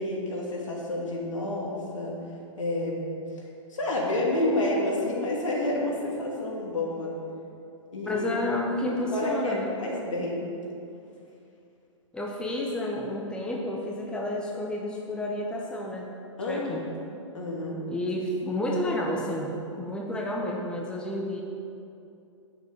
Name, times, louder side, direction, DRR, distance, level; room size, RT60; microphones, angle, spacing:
voice 1, 0.0-2.2 2.6-3.0 3.7-7.2 7.9-8.3 8.9-10.4 16.4-16.9 17.3-17.8, left 1 dB, 70° left, -3 dB, 2.7 m, -29 dB
voice 2, 8.1-9.7 12.1-16.1 16.5-16.9 17.9-21.4, left 1 dB, 5° left, -1 dB, 1.0 m, -30 dB
9.5 x 6.9 x 6.5 m, 2.6 s
hypercardioid pair, 120°, 17 cm